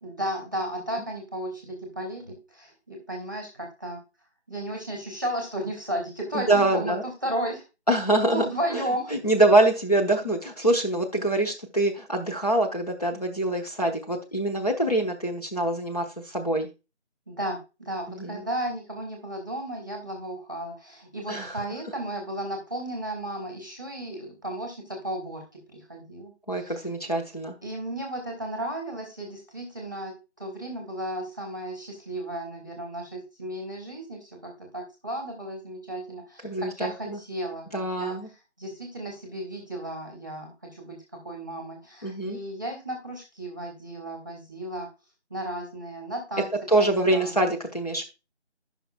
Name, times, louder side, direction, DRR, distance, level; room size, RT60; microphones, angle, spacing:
voice 1, 0.0-4.0 4.5-7.6 8.3-9.1 17.3-25.4 25.7-26.8 27.6-37.6 38.0-38.2 38.6-44.9 45.3-46.5 46.8-47.3, right 1 dB, 15° right, 1 dB, 1.3 m, -34 dB
voice 2, 6.3-7.0 7.9-8.4 8.7-16.7 18.1-18.4 21.3-21.6 26.5-27.6 36.4-37.2 37.7-38.3 42.0-42.4 46.7-48.0, right 1 dB, 35° left, 1 dB, 1.0 m, -24 dB
14.0 x 5.8 x 2.3 m, 0.29 s
figure-of-eight pair, 170°, 35 cm